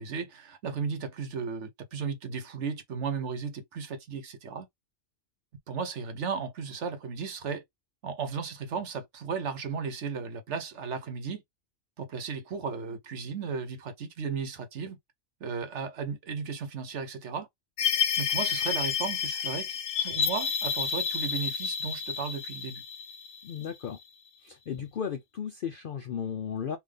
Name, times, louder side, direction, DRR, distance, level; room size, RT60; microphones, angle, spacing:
voice 1, 0.0-4.7 5.7-7.6 8.0-11.4 12.0-15.0 15.4-17.5 18.2-22.8, right 5 dB, 60° right, 1.1 m, -35 dB
sound 1, 17.8-24.0, left 7 dB, 90° left, 1.1 m, -30 dB
voice 2, 23.4-24.0 24.4-26.8, left 7 dB, 65° left, 0.5 m, -35 dB
3.5 x 2.6 x 3.3 m
omnidirectional pair, 1.4 m